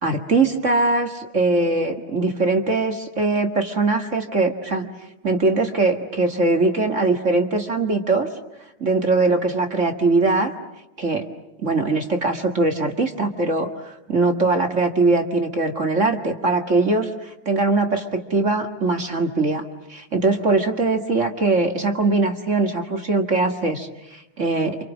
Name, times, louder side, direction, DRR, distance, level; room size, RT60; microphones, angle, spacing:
voice 1, 0.0-4.9 5.2-8.3 8.8-10.5 11.0-11.3 11.6-19.6 19.9-24.8, right 3 dB, 30° right, 4 dB, 1.8 m, -21 dB
28.5 x 27.5 x 7.3 m, 0.90 s
omnidirectional pair, 3.3 m